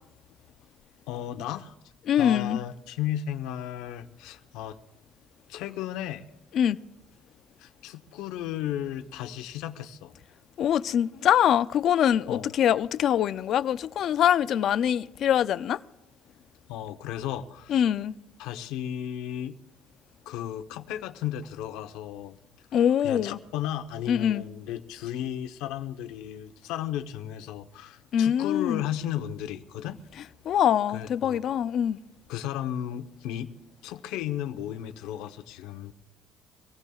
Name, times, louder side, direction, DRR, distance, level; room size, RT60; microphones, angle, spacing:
voice 1, 1.1-1.7 2.2-4.8 5.5-6.3 7.6-10.1 12.3-12.5 16.7-17.8 18.4-19.6 20.3-22.4 23.0-30.0 30.9-31.4 32.3-33.5 33.8-35.9, left 11 dB, 80° left, 0.9 m, -34 dB
voice 2, 2.1-2.6 6.5-6.8 10.6-15.8 17.7-18.1 22.7-23.4 24.1-24.4 28.1-28.8 30.5-32.0, left 9 dB, 45° left, 0.4 m, -24 dB
25.0 x 18.0 x 2.4 m
cardioid pair, 165°, 0 cm